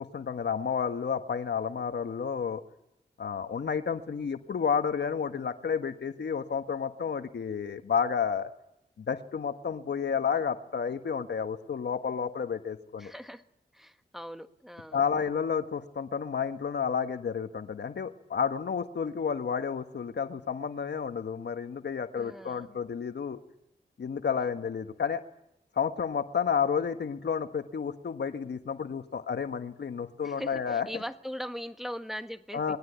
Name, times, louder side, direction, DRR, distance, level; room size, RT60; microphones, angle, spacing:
voice 1, 0.0-2.6 3.2-8.5 9.0-13.1 14.9-23.4 24.0-25.2 25.8-31.0 32.5-32.8, left 6 dB, 75° left, 8 dB, 1.4 m, -31 dB
voice 2, 13.0-13.4 13.7-15.0 22.2-22.8 30.2-32.8, equal, ahead, 7 dB, 1.6 m, -40 dB
22.0 x 17.0 x 9.5 m, 0.84 s
cardioid pair, 45°, 18 cm